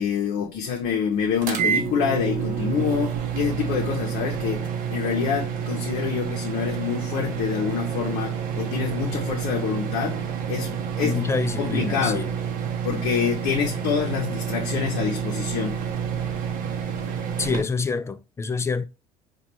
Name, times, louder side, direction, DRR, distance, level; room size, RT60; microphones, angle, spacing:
voice 1, 0.0-10.2 10.5-11.2 11.6-12.3 12.8-15.8, left 7 dB, 75° left, 0.6 m, -26 dB
sound 1, 1.4-17.6, right 7 dB, 65° right, 0.6 m, -29 dB
voice 2, 11.0-12.3 17.4-18.8, left 4 dB, 20° left, 0.3 m, -26 dB
4.0 x 2.3 x 2.9 m
supercardioid pair, 80°, 15 cm